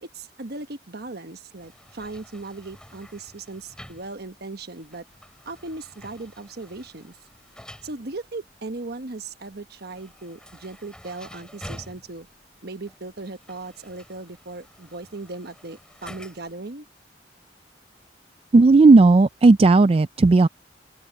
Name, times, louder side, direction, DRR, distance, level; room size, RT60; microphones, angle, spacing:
voice 1, 0.0-5.0 5.4-7.1 7.8-12.3 12.6-16.8, right 3 dB, 60° right, 1.3 m, -37 dB
sound 1, 1.6-16.6, equal, 5° left, 6.5 m, -48 dB
voice 2, 18.5-20.5, right 3 dB, 35° right, 0.4 m, -14 dB
open air
head